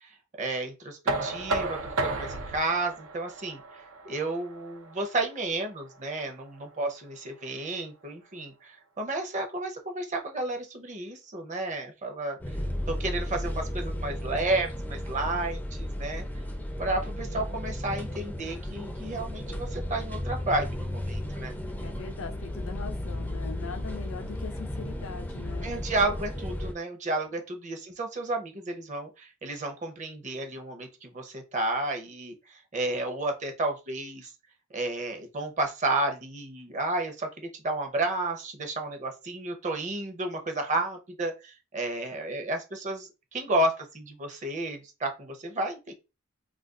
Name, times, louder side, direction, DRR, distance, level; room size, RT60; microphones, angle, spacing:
voice 1, 0.0-12.6 12.9-16.3 16.8-21.5 25.6-34.3 34.7-45.9, right 2 dB, 35° right, 0.6 m, -32 dB
Knock, 1.1-6.9, right 2 dB, 85° right, 0.5 m, -34 dB
sound 1, 12.4-26.7, left 1 dB, 10° left, 0.4 m, -34 dB
voice 2, 21.8-25.7, left 5 dB, 70° left, 0.5 m, -41 dB
2.4 x 2.3 x 3.6 m
head